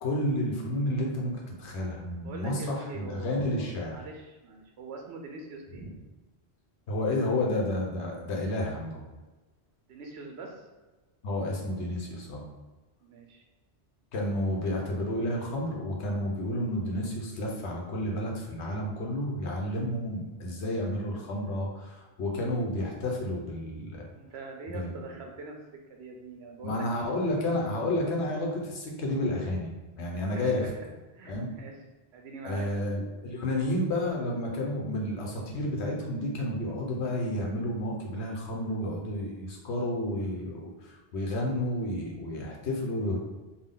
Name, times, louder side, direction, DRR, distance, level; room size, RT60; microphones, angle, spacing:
voice 1, 0.0-3.9 6.9-9.0 11.2-12.4 14.1-24.1 24.7-24.9 26.6-29.7 30.0-30.6 31.3-31.5 32.4-43.2, left 1 dB, 80° left, -1 dB, 1.1 m, -31 dB
voice 2, 2.2-5.9 9.9-10.7 13.0-13.4 24.1-25.6 25.9-27.3 30.3-31.8 32.1-32.9, right 3 dB, 75° right, 2 dB, 0.9 m, -43 dB
3.5 x 2.3 x 3.6 m, 1.2 s
omnidirectional pair, 1.1 m